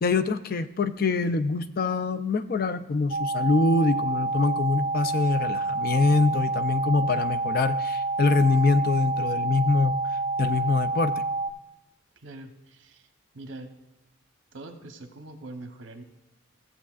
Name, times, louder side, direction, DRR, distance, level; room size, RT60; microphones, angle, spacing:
voice 1, 0.0-10.0 10.4-11.2, left 3 dB, 45° left, 10 dB, 0.4 m, -24 dB
sound 1, 3.1-11.5, right 3 dB, 35° right, 0.3 m, -28 dB
voice 2, 12.2-13.1 13.3-13.7 14.5-16.0, right 2 dB, 65° right, 6 dB, 1.0 m, -43 dB
15.0 x 7.4 x 2.4 m, 0.98 s
head